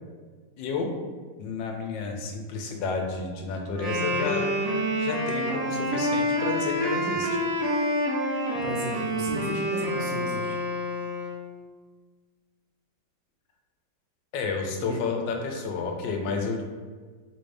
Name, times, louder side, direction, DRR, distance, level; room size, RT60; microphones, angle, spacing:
voice 1, 0.6-0.9 1.4-4.5 5.0-7.4 14.3-16.6, left 4 dB, 90° left, 3 dB, 1.3 m, -31 dB
Wind instrument woodwind instrument, 3.7-11.4, equal, 55° right, 1.1 m, -27 dB
voice 2, 8.6-10.6 14.8-15.1, right 2 dB, 75° right, -1 dB, 1.2 m, -34 dB
3.7 x 2.6 x 3.2 m, 1.5 s
omnidirectional pair, 1.9 m